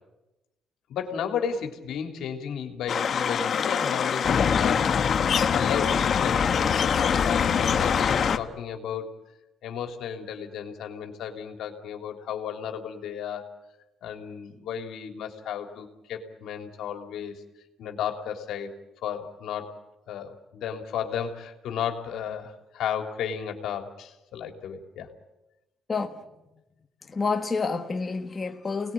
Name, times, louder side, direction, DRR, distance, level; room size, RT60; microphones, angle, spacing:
voice 1, 0.9-6.5 6.9-9.1 9.6-13.5 14.0-17.4 17.8-18.7 19.0-19.8 20.1-25.1, left 8 dB, 80° left, 3.2 m, -33 dB
sound 1, 2.9-8.4, left 7 dB, 55° left, 1.4 m, -23 dB
voice 2, 25.9-26.2 27.1-28.9, left 4 dB, 30° left, 1.6 m, -29 dB
29.0 x 20.0 x 8.9 m
cardioid pair, 90°, 0 cm